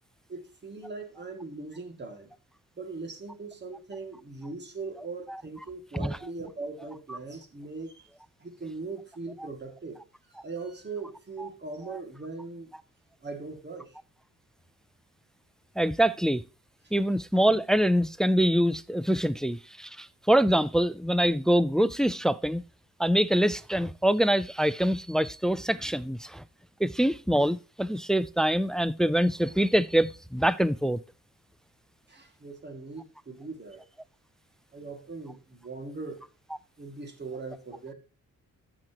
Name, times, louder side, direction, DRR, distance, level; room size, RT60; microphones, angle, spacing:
voice 1, 0.3-2.3 2.8-8.1 8.4-10.0 10.4-12.7 13.2-14.0 32.1-33.8 34.7-36.3 36.8-37.9, right 3 dB, 30° right, 2.2 m, -40 dB
voice 2, 15.8-16.4 16.9-22.6 23.0-26.4 26.8-31.0, equal, ahead, 0.3 m, -25 dB
14.0 x 6.0 x 2.9 m
cardioid pair, 125°, 34 cm